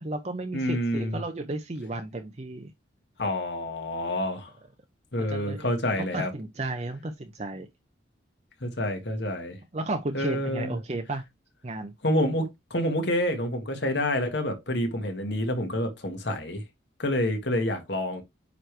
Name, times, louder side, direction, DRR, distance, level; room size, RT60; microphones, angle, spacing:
voice 1, 0.0-2.7 5.2-5.7 6.0-7.7 9.7-11.2 11.6-11.9, right 2 dB, 35° right, 0.6 m, -33 dB
voice 2, 0.5-1.2 3.2-4.5 5.1-6.3 8.6-9.6 10.1-10.8 12.0-16.6 17.0-18.2, left 1 dB, 65° left, 1.6 m, -28 dB
8.9 x 3.2 x 3.3 m
head